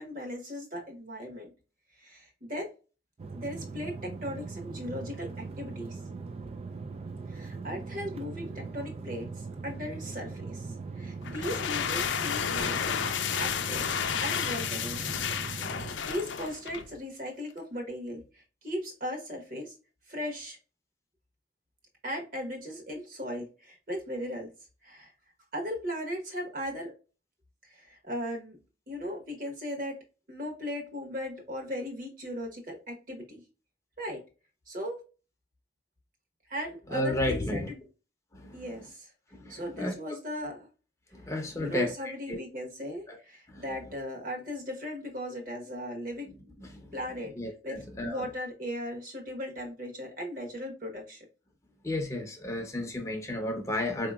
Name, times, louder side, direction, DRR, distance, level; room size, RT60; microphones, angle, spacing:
voice 1, 0.0-1.5 2.0-2.7 3.3-6.0 7.3-9.3 9.6-13.0 13.3-13.8 14.2-19.7 20.1-20.6 22.0-24.5 24.8-25.1 25.5-26.9 27.6-28.6 28.9-30.0 30.3-33.4 34.0-34.2 34.7-35.0 36.5-37.8 38.5-39.1 39.5-40.7 41.6-46.3 46.9-47.3 47.6-47.8 48.0-51.2, equal, 50° right, 1.3 m, -37 dB
sound 1, 3.2-16.0, right 4 dB, 35° right, 0.3 m, -40 dB
sound 2, 11.2-16.9, left 8 dB, 90° left, 0.5 m, -31 dB
voice 2, 36.9-37.7 38.3-38.7 39.3-39.9 41.1-42.4 43.1-43.2 43.5-43.6 46.6-46.9 47.4-48.2 51.8-54.1, left 1 dB, 15° left, 0.7 m, -33 dB
4.4 x 2.9 x 2.3 m
head